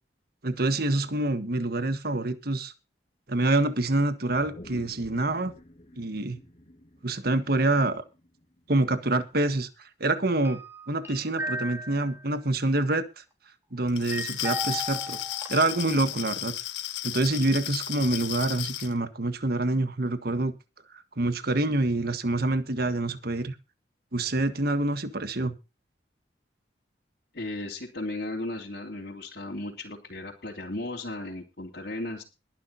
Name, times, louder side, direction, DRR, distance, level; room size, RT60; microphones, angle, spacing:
voice 1, 0.4-2.7 3.3-5.5 6.0-6.4 7.0-8.0 8.7-10.6 10.9-13.2 13.7-15.2 15.5-16.5 17.0-20.5 21.2-23.5 24.1-25.5, right 2 dB, 55° right, 10 dB, 1.5 m, -26 dB
sound 1, 4.3-8.9 9.3-9.4, left 1 dB, 35° left, 2.4 m, -49 dB
sound 2, 10.4-12.3 14.1-16.2, equal, 15° right, 3.6 m, -36 dB
Glass, 13.9-18.9, left 13 dB, 75° left, 1.5 m, -34 dB
voice 2, 27.3-32.2, left 2 dB, 55° left, -3 dB, 3.3 m, -35 dB
22.0 x 10.5 x 2.8 m, 0.29 s
head